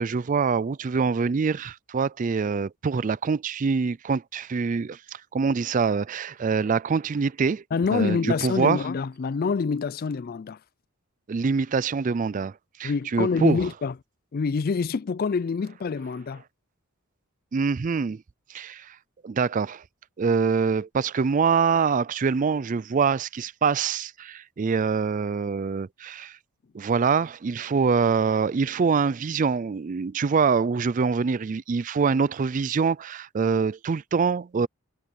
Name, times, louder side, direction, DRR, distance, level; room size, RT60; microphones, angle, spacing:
voice 1, 0.0-7.6 7.9-8.8 11.3-12.5 12.8-13.6 17.5-18.2 18.5-19.0 19.2-19.8 20.2-26.4 26.7-34.7, right 5 dB, 35° right, 0.3 m, -25 dB
voice 2, 7.7-10.6 12.8-13.9 14.3-16.4, left 5 dB, 45° left, 0.4 m, -26 dB
head